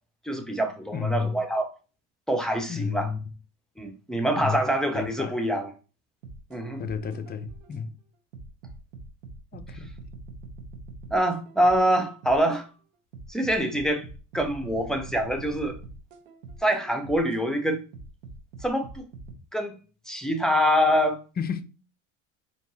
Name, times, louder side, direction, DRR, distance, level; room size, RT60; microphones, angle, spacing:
voice 1, 0.3-1.7 2.3-3.1 3.8-5.7 6.5-6.8 11.1-12.7 13.3-14.1 14.3-15.8 16.6-17.8 18.6-19.0 19.5-19.8 20.1-21.2, equal, ahead, 0.8 m, -25 dB
voice 2, 0.9-1.4 2.7-3.2 4.4-4.6 4.9-5.4 6.8-7.9 9.5-9.9 21.4-21.6, left 6 dB, 25° left, 0.5 m, -31 dB
sound 1, 6.2-7.8 8.3-12.6 13.1-17.4 17.9-19.4, right 3 dB, 85° right, 1.0 m, -43 dB
4.5 x 2.8 x 2.7 m
hypercardioid pair, 80°, 38 cm